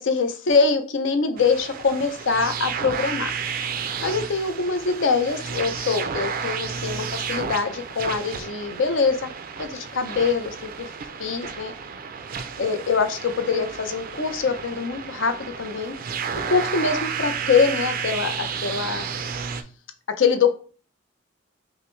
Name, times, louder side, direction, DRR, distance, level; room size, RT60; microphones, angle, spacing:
voice 1, 0.0-3.3 4.0-9.3 9.6-10.9 11.2-11.7 12.6-16.0 16.5-19.1 20.2-20.5, left 5 dB, 70° left, 8 dB, 0.6 m, -24 dB
sound 1, 1.4-19.6, right 6 dB, 45° right, 0.4 m, -32 dB
5.6 x 2.1 x 3.1 m, 0.39 s
head